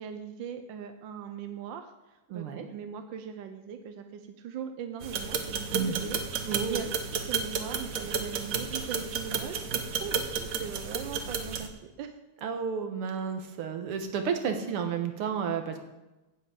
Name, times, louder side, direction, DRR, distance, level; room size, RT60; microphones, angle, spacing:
voice 1, 0.0-6.9 7.3-12.1, right 7 dB, 70° right, 7 dB, 1.3 m, -40 dB
voice 2, 2.3-2.7 5.7-6.0 6.5-6.9 12.4-15.8, right 6 dB, 85° right, 6 dB, 2.1 m, -31 dB
sound 1, 5.0-11.7, right 5 dB, 50° right, 1.1 m, -32 dB
8.6 x 7.6 x 8.2 m, 1.1 s
omnidirectional pair, 2.4 m